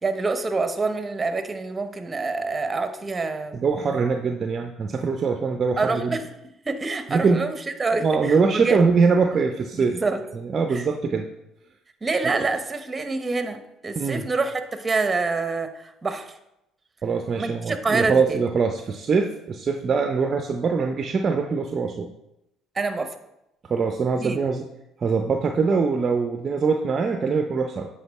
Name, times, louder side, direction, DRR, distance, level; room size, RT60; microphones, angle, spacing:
voice 1, 0.0-3.6 5.8-6.2 6.6-8.8 9.3-9.4 9.7-10.2 10.7-10.9 12.0-16.4 17.4-18.4 22.7-23.1 24.2-24.4, right 3 dB, 25° right, 9 dB, 0.9 m, -26 dB
voice 2, 3.5-6.2 7.1-7.4 8.0-10.0 10.3-11.3 12.2-12.5 14.0-14.3 17.0-22.1 23.7-24.6 25.0-27.9, right 5 dB, 45° right, 5 dB, 0.5 m, -23 dB
7.9 x 4.9 x 3.6 m, 0.86 s
hypercardioid pair, 65°, 0 cm